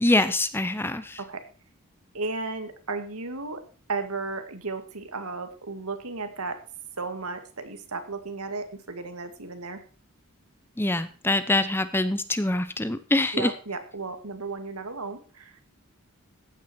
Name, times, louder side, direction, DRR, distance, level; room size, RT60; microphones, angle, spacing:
voice 1, 0.0-1.2 10.8-13.5, left 2 dB, 10° left, 12 dB, 0.8 m, -24 dB
voice 2, 2.1-3.6 3.9-6.6 7.0-9.8 13.3-15.5, right 3 dB, 85° right, 8 dB, 2.1 m, -34 dB
15.0 x 9.4 x 4.4 m, 0.38 s
head